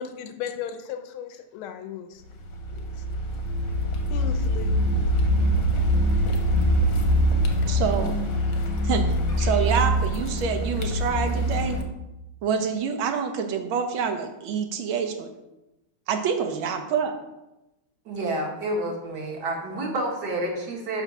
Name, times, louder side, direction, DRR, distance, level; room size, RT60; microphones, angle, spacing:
voice 1, 0.0-2.1 2.7-2.9 4.1-4.7, left 8 dB, 85° left, 7 dB, 1.6 m, -35 dB
Car, 2.4-11.8, equal, 55° left, 1.0 m, -24 dB
voice 2, 7.7-8.2 8.8-9.1 9.4-11.8 12.4-15.3 16.1-17.2, right 6 dB, 80° right, 6 dB, 1.6 m, -26 dB
voice 3, 18.1-21.0, right 1 dB, 55° right, -1 dB, 1.8 m, -29 dB
5.9 x 4.5 x 6.0 m, 0.95 s
omnidirectional pair, 2.2 m